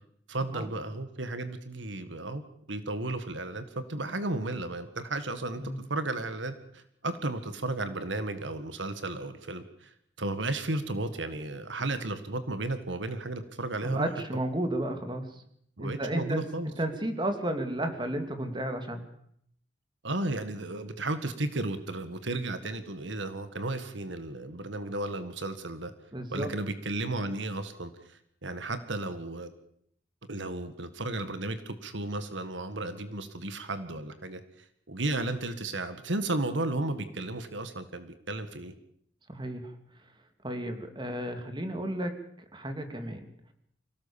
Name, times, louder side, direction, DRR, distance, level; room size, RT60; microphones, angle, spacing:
voice 1, 0.3-2.4 2.7-14.1 15.8-16.7 20.0-25.9 26.3-29.5 30.3-38.7, right 2 dB, 85° right, 10 dB, 1.8 m, -34 dB
voice 2, 13.8-15.4 15.8-16.4 16.8-19.0 26.1-26.5 39.3-39.7 40.4-42.1 42.5-43.2, right 1 dB, 25° right, 6 dB, 2.8 m, -32 dB
25.0 x 17.5 x 7.2 m, 0.67 s
head